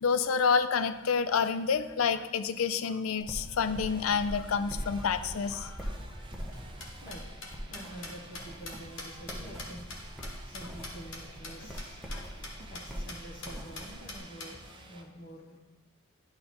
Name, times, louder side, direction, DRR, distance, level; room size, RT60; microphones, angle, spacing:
voice 1, 0.0-5.9 12.1-12.2, left 6 dB, 80° left, 12 dB, 0.5 m, -28 dB
sound 1, 3.2-14.2, equal, ahead, 0.9 m, -42 dB
sound 2, 3.6-15.0, right 2 dB, 25° right, 0.7 m, -51 dB
sound 3, 6.5-11.2 11.4-11.5 11.8-11.9 12.1-12.2 12.4-12.8 13.1-13.2 13.4-14.5, left 3 dB, 65° left, 1.4 m, -42 dB
voice 2, 7.0-7.4 7.7-9.8 10.5-12.0 12.7-14.6 14.9-15.6, right 1 dB, 40° left, -1 dB, 1.3 m, -47 dB
11.0 x 4.0 x 4.3 m, 1.2 s
head